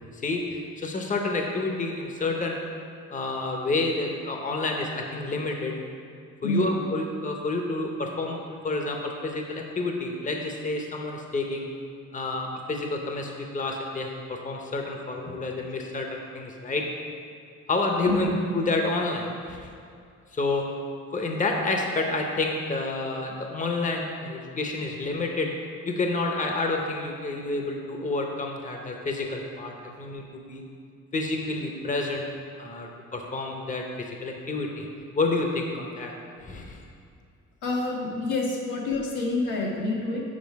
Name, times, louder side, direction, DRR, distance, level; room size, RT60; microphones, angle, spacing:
voice 1, 0.0-2.6 3.1-5.8 6.4-11.7 12.1-16.9 17.7-19.7 20.3-20.6 21.1-25.5 25.8-30.6 31.1-32.3 32.6-34.9 35.1-36.1 36.4-36.8, left 3 dB, 25° left, 2 dB, 0.8 m, -29 dB
voice 2, 37.6-40.2, left 2 dB, 90° left, -3 dB, 1.5 m, -27 dB
7.4 x 4.9 x 4.7 m, 2.3 s
cardioid pair, 90°, 30 cm